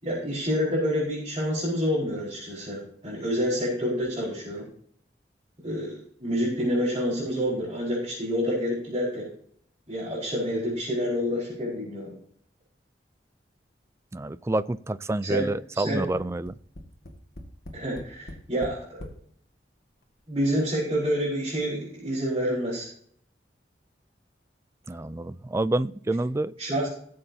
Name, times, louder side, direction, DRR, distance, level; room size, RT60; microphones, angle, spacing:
voice 1, 0.0-4.6 5.6-9.3 9.9-12.1 15.2-15.4 15.7-16.0 17.7-19.1 20.3-22.9 26.6-26.9, equal, 30° right, -8 dB, 4.9 m, -28 dB
voice 2, 14.1-16.5 24.9-26.5, right 2 dB, 15° right, 16 dB, 0.3 m, -28 dB
Tap, 16.2-19.2 20.0-20.1 20.4-20.5, left 1 dB, 60° left, 1.9 m, -42 dB
18.0 x 7.7 x 2.8 m, 0.62 s
head